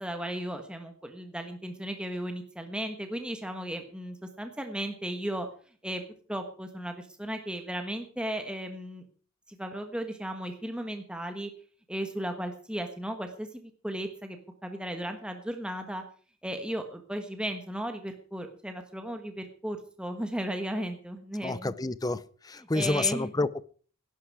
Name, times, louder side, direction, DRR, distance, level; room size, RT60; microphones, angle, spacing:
voice 1, 0.0-5.5 5.8-6.0 6.3-9.0 9.5-11.5 11.9-14.4 14.6-16.0 16.4-21.7 22.7-23.3, right 1 dB, 5° right, 1.3 m, -35 dB
voice 2, 21.4-23.6, left 3 dB, 20° left, 0.6 m, -29 dB
17.5 x 11.0 x 4.8 m
head